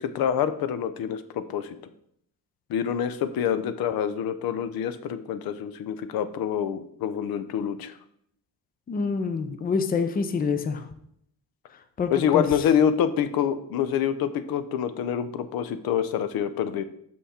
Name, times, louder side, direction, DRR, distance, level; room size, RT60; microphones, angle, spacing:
voice 1, 0.0-1.8 2.7-7.9 12.1-16.8, left 8 dB, 85° left, 12 dB, 0.7 m, -26 dB
voice 2, 8.9-10.9 12.0-12.5, left 5 dB, 25° left, 9 dB, 0.5 m, -26 dB
6.4 x 5.7 x 4.2 m, 0.70 s
cardioid pair, 170°, 36 cm